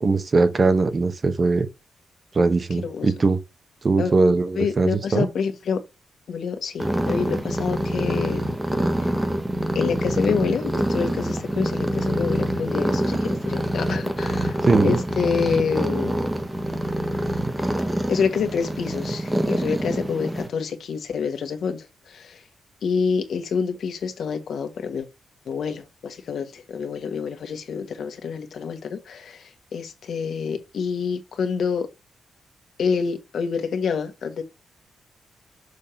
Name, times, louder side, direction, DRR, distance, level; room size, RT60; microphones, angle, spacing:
voice 1, 0.0-1.7 2.3-3.4 3.8-5.3 14.6-15.0, right 3 dB, 35° right, 0.9 m, -20 dB
voice 2, 4.6-5.8 6.3-8.5 9.0-9.1 9.7-16.2 17.6-17.7 18.1-22.4 22.8-25.1 25.5-29.4 29.7-31.9 32.8-34.4, left 6 dB, 70° left, 1.4 m, -27 dB
sound 1, 6.8-20.5, right 1 dB, 10° right, 1.1 m, -25 dB
6.5 x 3.6 x 5.7 m
wide cardioid pair, 135°, 0 cm